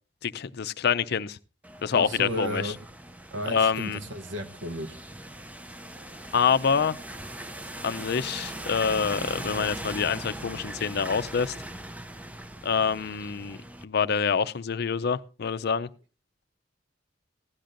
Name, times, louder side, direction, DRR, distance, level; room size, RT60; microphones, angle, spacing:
voice 1, 0.2-1.4 1.8-2.7 3.5-4.0 6.3-7.0 7.8-11.6 12.6-13.6 13.8-15.9, left 6 dB, 60° left, 0.5 m, -26 dB
sound 1, 1.6-13.8, right 1 dB, 10° right, 0.5 m, -40 dB
voice 2, 1.9-2.8 3.3-5.0 7.8-7.9, equal, 70° right, 1.0 m, -33 dB
16.0 x 12.0 x 2.5 m
head